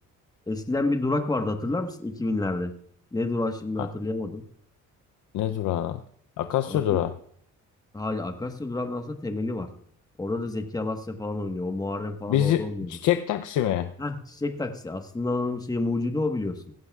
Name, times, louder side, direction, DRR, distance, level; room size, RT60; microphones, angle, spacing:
voice 1, 0.5-2.7 3.1-4.4 6.7-7.1 7.9-9.7 10.2-13.0 14.0-16.7, left 2 dB, 10° left, 6 dB, 1.3 m, -29 dB
voice 2, 5.3-6.0 6.4-7.1 12.3-13.9, left 12 dB, 80° left, 9 dB, 0.6 m, -25 dB
18.0 x 15.0 x 2.4 m, 0.64 s
cardioid pair, 90°, 30 cm